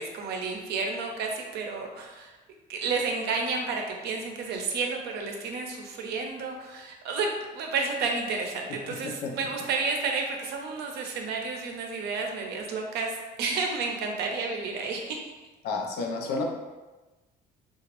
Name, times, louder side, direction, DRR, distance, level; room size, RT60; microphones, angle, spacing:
voice 1, 0.0-2.3 2.7-7.3 7.5-15.3, right 4 dB, 75° right, 2 dB, 0.6 m, -31 dB
voice 2, 15.6-16.4, left 3 dB, 80° left, 2 dB, 0.5 m, -30 dB
2.9 x 2.4 x 2.9 m, 1.2 s
cardioid pair, 110°, 17 cm